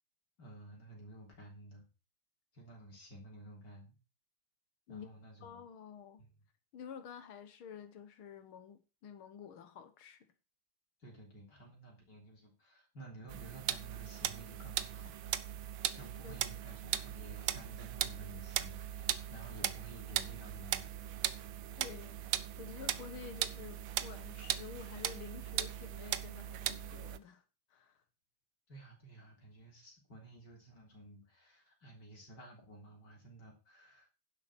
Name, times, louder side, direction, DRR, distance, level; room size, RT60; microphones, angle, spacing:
voice 1, 0.4-1.9 2.5-3.9 4.9-5.7 6.2-6.3 11.0-15.6 15.9-20.9 28.7-34.1, right 1 dB, 55° left, 4.1 m, -53 dB
voice 2, 5.4-6.2 6.7-10.3 16.2-16.4 21.8-22.2 22.6-27.4 27.7-28.0, left 7 dB, 90° left, 2.1 m, -50 dB
sound 1, 13.3-27.2, right 11 dB, 75° right, 1.5 m, -38 dB
11.0 x 7.6 x 6.2 m
omnidirectional pair, 2.2 m